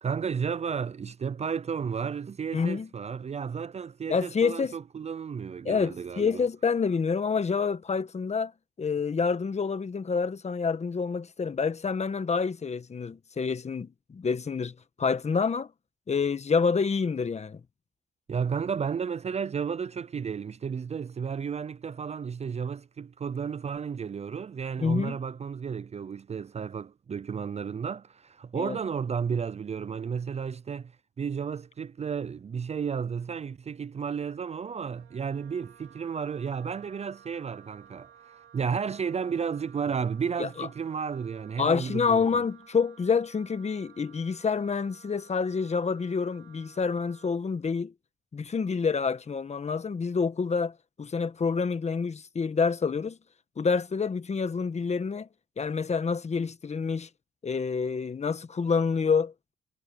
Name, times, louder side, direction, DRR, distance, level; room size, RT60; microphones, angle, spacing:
voice 1, 0.0-6.4 18.3-30.9 31.2-42.4, right 6 dB, 35° right, 0.5 m, -33 dB
voice 2, 2.5-2.9 4.1-4.7 5.6-8.5 8.8-15.7 16.1-17.6 24.8-25.2 28.5-28.8 40.4-40.7 41.6-47.9 48.3-50.7 51.0-53.2 53.6-55.3 55.6-57.1 57.4-59.5, left 5 dB, 35° left, 1.4 m, -28 dB
Wind instrument woodwind instrument, 34.9-47.4, right 9 dB, 85° right, 2.9 m, -55 dB
cardioid pair, 90°, 20 cm